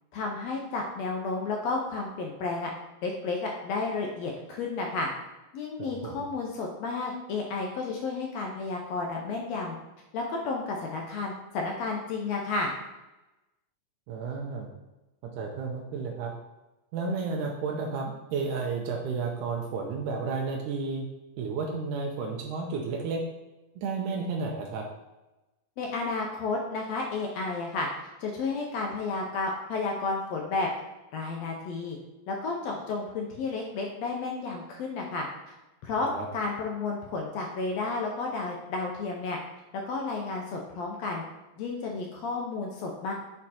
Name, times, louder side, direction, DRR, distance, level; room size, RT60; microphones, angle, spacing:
voice 1, 0.1-2.7 3.0-5.1 5.5-9.8 10.1-12.7 25.8-27.9 28.2-30.7 31.1-32.0 32.3-35.3 35.8-39.4 39.9-41.2 41.6-43.1, left 3 dB, 80° left, 1 dB, 1.6 m, -32 dB
voice 2, 5.8-6.1 14.1-14.7 15.4-16.3 16.9-21.0 21.4-23.2 23.8-24.8 36.0-36.3, right 4 dB, 80° right, -1 dB, 2.2 m, -32 dB
6.0 x 4.4 x 4.2 m, 1.0 s
omnidirectional pair, 3.7 m